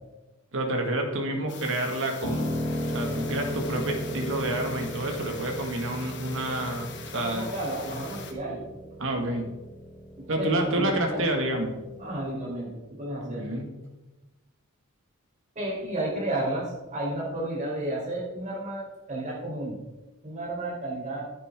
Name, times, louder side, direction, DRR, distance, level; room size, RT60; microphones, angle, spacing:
voice 1, 0.5-2.5 2.9-7.5 9.0-9.5 10.3-11.8 13.2-13.7, right 1 dB, 60° right, 2 dB, 2.0 m, -29 dB
sound 1, 1.5-8.3, left 5 dB, 55° left, 1.3 m, -43 dB
Piano, 2.2-12.3, equal, 35° left, 2.3 m, -36 dB
voice 2, 7.1-8.6 10.2-11.3 12.0-13.5 15.5-19.8 20.2-21.3, right 1 dB, 35° right, -4 dB, 4.2 m, -32 dB
10.5 x 10.0 x 3.7 m, 1.1 s
head